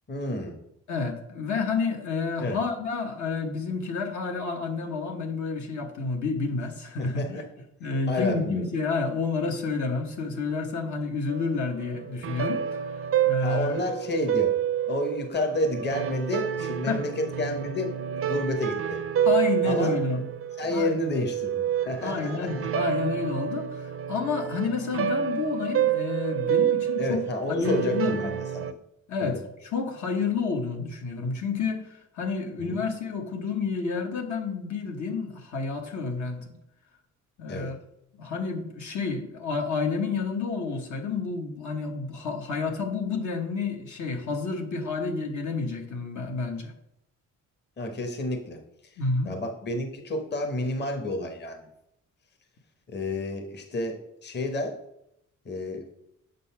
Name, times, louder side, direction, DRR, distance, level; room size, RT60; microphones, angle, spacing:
voice 1, 0.1-0.6 2.4-2.6 7.0-7.4 8.1-8.7 13.4-14.5 14.9-19.0 19.6-20.0 20.6-22.7 27.0-28.8 29.2-29.4 32.6-32.8 37.5-37.7 47.8-48.6 48.9-51.7 52.9-54.8 55.4-55.9, left 1 dB, 35° left, 4 dB, 1.0 m, -30 dB
voice 2, 0.9-7.4 7.8-12.9 13.3-13.8 16.8-17.0 19.2-20.3 20.7-21.0 22.0-27.2 27.5-28.2 29.1-36.6 37.4-37.8 38.2-46.7 49.0-49.3, left 4 dB, 65° left, 3 dB, 1.1 m, -30 dB
sound 1, 11.3-28.7, right 9 dB, 45° right, 0.5 m, -28 dB
6.6 x 4.0 x 5.6 m, 0.79 s
cardioid pair, 95°, 32 cm